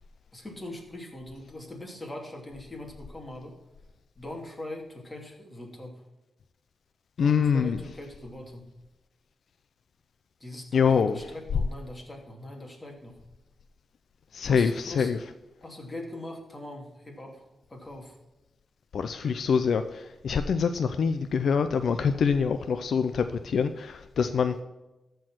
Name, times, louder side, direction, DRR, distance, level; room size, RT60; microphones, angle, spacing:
voice 1, 0.3-3.5 4.2-5.9 7.2-8.7 10.4-13.2 14.4-15.1 15.6-18.2, left 1 dB, 20° left, 0 dB, 2.8 m, -41 dB
voice 2, 7.2-7.8 10.7-11.3 14.3-15.2 18.9-24.6, left 6 dB, 70° left, 9 dB, 0.5 m, -25 dB
14.0 x 4.6 x 5.9 m, 1.0 s
cardioid pair, 95°, 0 cm